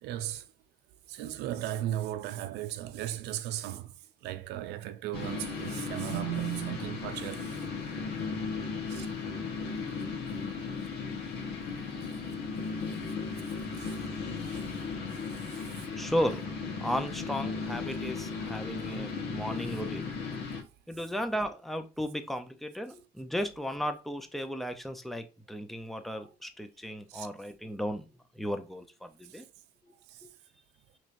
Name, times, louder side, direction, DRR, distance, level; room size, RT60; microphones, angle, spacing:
voice 1, 0.0-0.5 1.1-7.6 8.9-9.1 13.7-14.1 14.5-14.6 15.5-15.6 20.5-20.6 26.2-26.3 27.1-27.3 29.3-29.4 30.1-30.3, right 13 dB, 85° right, 0.5 m, -36 dB
sound 1, 5.1-20.6, left 4 dB, 75° left, 1.2 m, -36 dB
voice 2, 15.9-16.4 16.8-20.1 20.9-28.1 28.4-29.5 30.2-30.3, equal, ahead, 0.6 m, -35 dB
4.4 x 3.2 x 2.6 m
cardioid pair, 110°, 17 cm